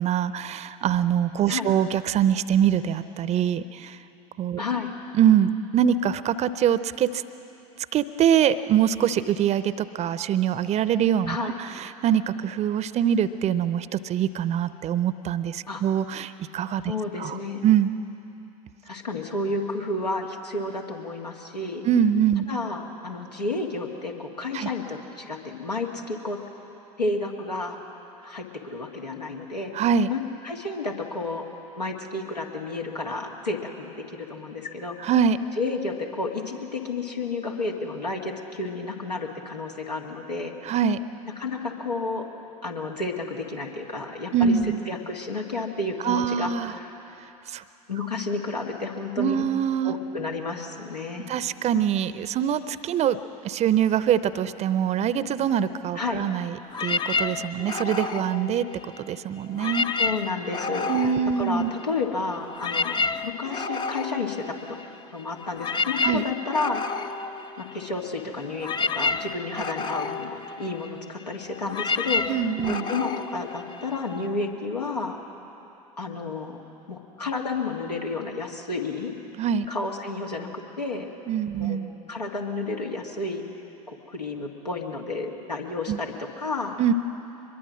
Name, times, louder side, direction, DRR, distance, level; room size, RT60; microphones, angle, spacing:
voice 1, 0.0-4.0 4.4-4.6 5.1-7.2 7.9-16.8 17.2-17.4 17.6-17.9 21.8-22.5 24.5-24.7 29.7-30.1 35.0-35.4 40.6-41.0 44.3-44.8 46.0-46.7 47.5-47.6 49.2-50.0 51.3-53.2 53.4-58.7 59.0-59.9 60.9-61.7 66.0-66.2 72.3-72.8 79.4-79.7 81.3-81.9 85.9-86.0 86.8-86.9, right 9 dB, 35° right, 15 dB, 0.7 m, -24 dB
voice 2, 4.6-5.0 11.3-11.6 15.7-15.8 16.8-17.6 18.9-21.9 22.5-26.4 27.0-27.8 28.2-29.7 30.1-31.4 31.8-35.1 35.6-40.5 41.4-42.3 42.6-47.0 47.9-49.4 49.8-51.3 56.0-56.2 60.0-60.9 61.4-64.8 65.1-67.1 67.6-75.2 76.0-76.6 76.9-79.1 79.7-80.5 80.8-81.1 81.5-81.8 82.1-83.4 83.9-86.8, left 3 dB, 85° left, 0 dB, 1.9 m, -31 dB
sound 1, 56.7-59.1 59.5-62.0 62.3-74.3, left 4 dB, 20° left, 0.7 m, -30 dB
23.5 x 21.5 x 6.3 m, 3.0 s
figure-of-eight pair, 75°, 20 cm